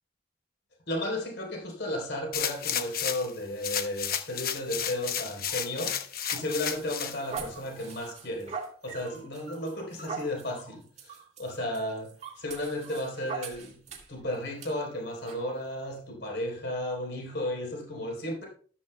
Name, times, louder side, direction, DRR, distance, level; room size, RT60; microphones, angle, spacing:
voice 1, 0.9-6.0 6.3-8.5 8.8-13.8 14.1-18.4, left 1 dB, 75° left, 3.9 m, -34 dB
sound 1, 2.3-3.3 3.6-7.2 7.7-7.8, left 9 dB, 55° left, 1.0 m, -32 dB
sound 2, 5.5-14.2 14.6-14.7 15.3-15.4, right 5 dB, 40° right, 2.0 m, -42 dB
13.0 x 13.0 x 2.3 m
head